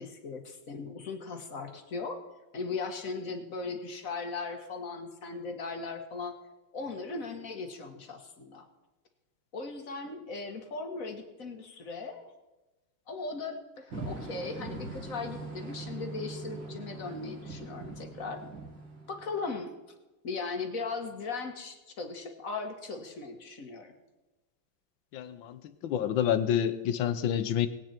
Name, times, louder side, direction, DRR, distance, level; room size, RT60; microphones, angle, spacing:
voice 1, 0.0-2.2 2.5-6.4 6.7-8.7 9.5-12.3 13.1-18.4 19.1-19.7 20.2-23.9, left 4 dB, 45° left, 5 dB, 1.8 m, -38 dB
sound 1, 13.9-19.6, right 2 dB, 60° right, 3.1 m, -41 dB
voice 2, 25.1-27.7, left 10 dB, 70° left, 12 dB, 1.6 m, -28 dB
20.5 x 9.2 x 4.5 m, 1.1 s
omnidirectional pair, 2.3 m